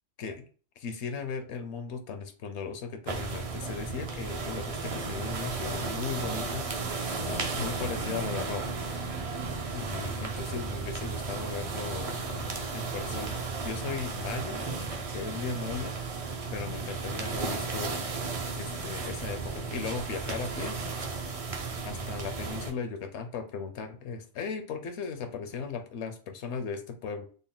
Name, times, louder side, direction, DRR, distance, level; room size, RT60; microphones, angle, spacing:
voice 1, 0.8-8.7 9.7-14.7 15.1-15.9 16.5-17.9 18.5-20.8 21.8-27.3, left 5 dB, 70° left, 7 dB, 0.8 m, -37 dB
sound 1, 3.1-22.7, right 4 dB, 45° right, 0.5 m, -34 dB
3.9 x 2.1 x 3.7 m, 0.40 s
omnidirectional pair, 1.2 m